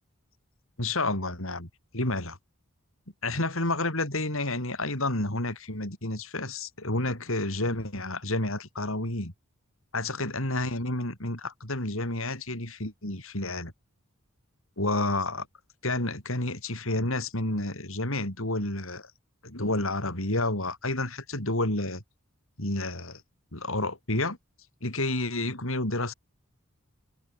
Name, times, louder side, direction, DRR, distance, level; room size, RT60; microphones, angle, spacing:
voice 1, 0.8-1.7 1.9-2.4 3.2-9.3 9.9-13.7 14.8-15.5 15.8-19.1 19.4-22.0 22.6-23.2 23.5-24.4 24.8-26.1, left 2 dB, 65° left, 6.3 m, -30 dB
head